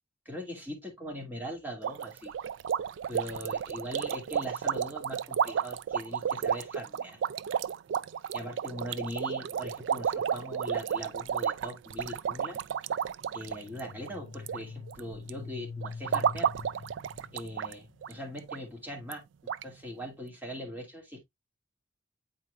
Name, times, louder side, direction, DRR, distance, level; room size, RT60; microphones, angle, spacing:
voice 1, 0.3-2.3 3.1-7.2 8.3-12.6 13.3-16.5 17.3-19.2 19.6-21.2, equal, 10° right, 2.4 m, -41 dB
sound 1, 1.8-14.6 14.9-15.3 15.8-17.7 18.0-18.1 18.5-18.6 19.1-19.2 19.5-19.6, right 8 dB, 85° right, 0.3 m, -32 dB
sound 2, 13.3-18.2, left 4 dB, 75° left, 0.6 m, -45 dB
8.9 x 4.6 x 2.4 m
head